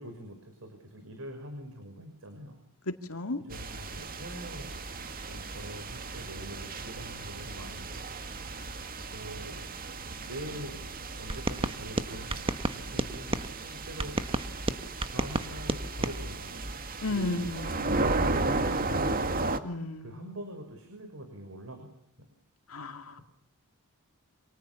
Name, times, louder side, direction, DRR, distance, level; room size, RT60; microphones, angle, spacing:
voice 1, 0.0-2.6 3.4-4.7 5.2-8.0 9.1-9.7 10.2-10.9 11.1-14.1 15.1-16.6 17.1-17.5 17.9-19.4 20.0-21.9, right 1 dB, 65° right, 6 dB, 6.2 m, -43 dB
voice 2, 3.1-3.4 17.0-18.0 19.6-20.2 22.7-23.2, left 2 dB, 70° left, 6 dB, 2.3 m, -34 dB
sound 1, 3.5-19.6, right 2 dB, 40° right, 2.2 m, -35 dB
sound 2, 11.3-13.5 14.0-16.2, right 2 dB, 25° right, 1.4 m, -32 dB
29.0 x 27.5 x 7.1 m, 0.74 s
head